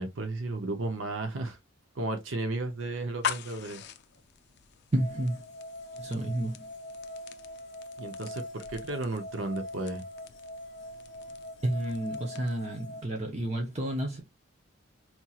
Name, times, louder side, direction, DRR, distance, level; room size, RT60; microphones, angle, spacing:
voice 1, 0.0-1.6 1.9-3.8 8.0-10.0, right 2 dB, 70° right, 0.7 m, -34 dB
sound 1, 3.0-12.7, left 7 dB, 55° left, 0.4 m, -43 dB
voice 2, 4.9-5.5 5.9-6.6 11.6-14.2, right 1 dB, 35° right, 0.7 m, -31 dB
sound 2, 5.0-13.0, left 1 dB, 40° left, 1.2 m, -43 dB
4.3 x 2.9 x 2.3 m
head